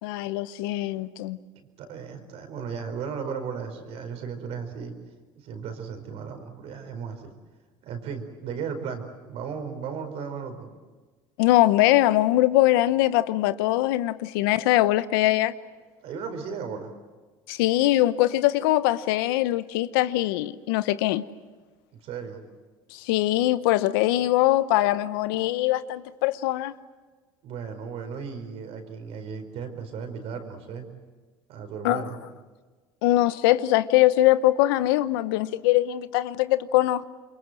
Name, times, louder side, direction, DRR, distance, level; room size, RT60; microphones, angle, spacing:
voice 1, 0.0-1.4 11.4-15.5 17.5-21.2 22.9-26.7 31.8-32.1 33.0-37.1, left 15 dB, 80° left, 1.0 m, -22 dB
voice 2, 1.5-4.9 5.4-7.3 7.8-10.7 16.0-16.9 22.0-22.4 27.4-30.9 31.5-32.2, right 6 dB, 60° right, 4.9 m, -35 dB
28.0 x 23.5 x 7.8 m
supercardioid pair, 100°, 12 cm